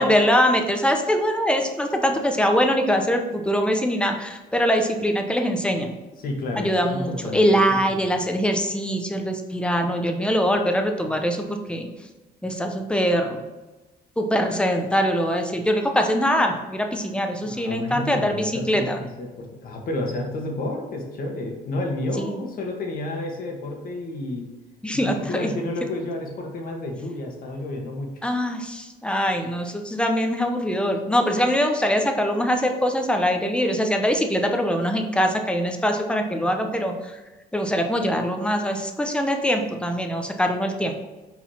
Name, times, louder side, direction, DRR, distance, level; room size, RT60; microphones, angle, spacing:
voice 1, 0.0-5.9 6.5-11.9 12.4-13.4 14.2-19.0 22.2-22.3 24.8-25.5 28.2-37.1 37.5-40.9, equal, 5° left, 4 dB, 0.9 m, -23 dB
voice 2, 6.2-7.6 7.9-8.0 17.4-24.4 25.0-28.1, left 2 dB, 60° left, 1 dB, 1.7 m, -31 dB
6.1 x 4.1 x 5.6 m, 1.1 s
cardioid pair, 110°, 17 cm